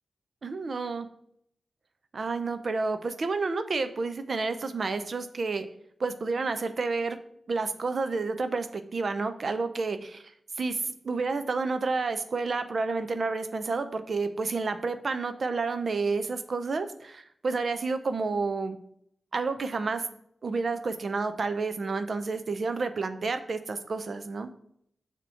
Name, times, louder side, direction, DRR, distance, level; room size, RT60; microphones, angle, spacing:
voice 1, 0.4-1.1 2.1-5.7 6.0-7.2 7.5-10.2 10.6-18.8 19.3-20.1 20.4-24.5, right 4 dB, 60° right, 9 dB, 0.6 m, -30 dB
6.9 x 2.9 x 5.6 m, 0.69 s
cardioid pair, 60°, 0 cm